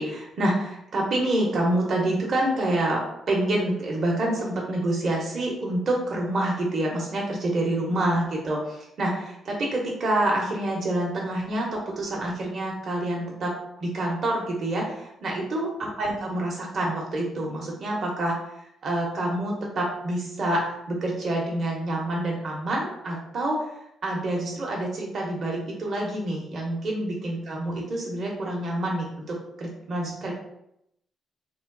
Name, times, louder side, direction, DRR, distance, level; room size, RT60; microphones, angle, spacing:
voice 1, 0.0-13.5 13.8-18.3 18.8-23.6 24.0-30.3, right 1 dB, 55° right, -2 dB, 0.9 m, -27 dB
3.1 x 2.3 x 3.8 m, 0.78 s
cardioid pair, 90°, 0 cm